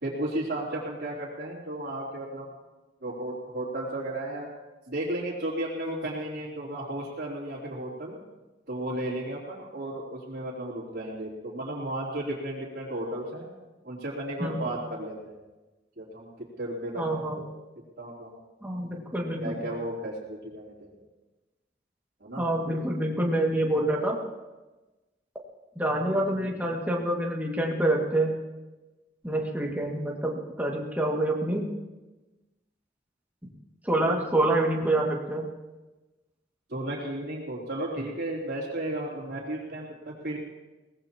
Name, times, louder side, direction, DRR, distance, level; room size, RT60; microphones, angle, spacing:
voice 1, 0.0-2.5 3.0-4.5 4.9-8.2 8.7-13.5 13.8-15.4 16.0-17.5 18.0-18.3 19.4-20.9 22.2-22.8 36.7-40.4, right 1 dB, 60° right, -9 dB, 3.4 m, -34 dB
voice 2, 17.0-17.4 18.6-19.6 22.3-24.2 25.8-28.4 29.2-31.7 33.8-35.5, right 1 dB, 10° right, -2 dB, 2.1 m, -27 dB
22.5 x 18.5 x 3.0 m, 1.1 s
head